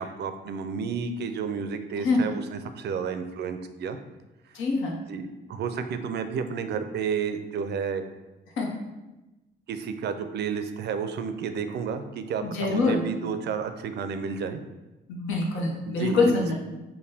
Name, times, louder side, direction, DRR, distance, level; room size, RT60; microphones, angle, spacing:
voice 1, 0.0-4.0 5.1-5.2 5.5-8.0 9.7-14.6 15.8-16.5, right 6 dB, 60° right, 8 dB, 0.4 m, -31 dB
voice 2, 4.5-5.0 8.6-8.7 12.4-13.0 15.1-16.5, left 3 dB, 80° left, 0 dB, 0.8 m, -25 dB
5.3 x 2.2 x 2.7 m, 1.0 s
cardioid pair, 90°, 20 cm